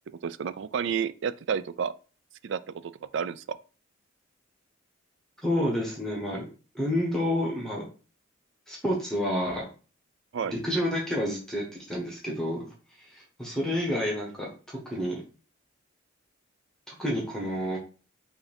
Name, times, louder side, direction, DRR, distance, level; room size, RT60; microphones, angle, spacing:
voice 1, 0.2-1.9 2.4-3.6 10.3-10.5, right 7 dB, 65° right, 0.3 m, -31 dB
voice 2, 5.4-6.5 6.7-7.9 8.7-9.6 10.4-12.7 13.0-15.2 16.9-17.8, equal, 5° left, 1.1 m, -29 dB
5.8 x 2.6 x 3.4 m
head